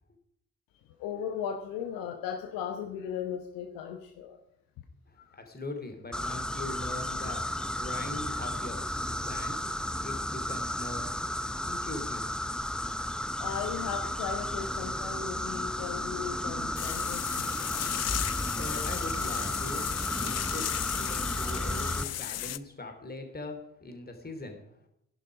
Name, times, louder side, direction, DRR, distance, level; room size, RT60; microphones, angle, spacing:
voice 1, 1.0-4.4 5.2-5.4 13.4-17.3, left 8 dB, 60° left, 6 dB, 1.2 m, -37 dB
voice 2, 5.1-7.5 7.8-8.8 9.2-9.7 10.0-11.1 11.6-12.2 18.5-20.7 20.9-24.6, left 2 dB, 25° left, 5 dB, 3.1 m, -41 dB
sound 1, 6.1-22.0, left 1 dB, ahead, 0.6 m, -33 dB
sound 2, 16.8-22.6, left 13 dB, 45° left, 0.6 m, -35 dB
14.0 x 11.0 x 5.2 m, 0.75 s
figure-of-eight pair, 40°, 38 cm